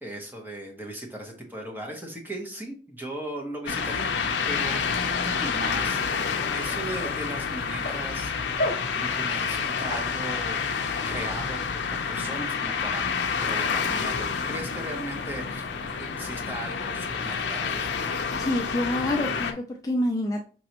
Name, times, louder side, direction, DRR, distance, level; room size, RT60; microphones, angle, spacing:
voice 1, 0.0-8.6 8.9-10.7 11.0-13.0 13.4-15.7 16.0-17.9, right 1 dB, 10° right, 1 dB, 0.9 m, -37 dB
sound 1, 3.7-19.5, left 5 dB, 80° left, 0.6 m, -29 dB
sound 2, 5.4-13.6, left 1 dB, 50° left, 0.8 m, -39 dB
voice 2, 18.4-20.4, left 1 dB, 20° left, 1 dB, 0.4 m, -27 dB
5.3 x 3.1 x 2.9 m, 0.38 s
head